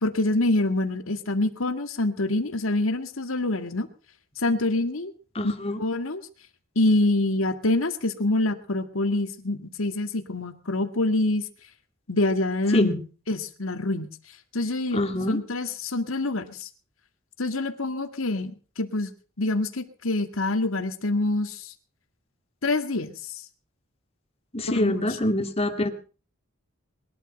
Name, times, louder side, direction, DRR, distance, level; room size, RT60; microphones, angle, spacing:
voice 1, 0.0-3.9 4.4-5.1 5.4-5.5 5.8-6.2 6.8-11.4 12.1-12.9 13.3-14.1 14.5-15.0 15.3-16.7 17.4-19.1 19.4-21.7 22.6-23.3 24.6-25.2, left 2 dB, 75° left, 7 dB, 2.0 m, -26 dB
voice 2, 5.4-5.8 12.7-13.0 14.9-15.4 24.5-25.9, left 1 dB, 30° left, 6 dB, 2.1 m, -25 dB
21.5 x 12.0 x 5.3 m, 0.38 s
head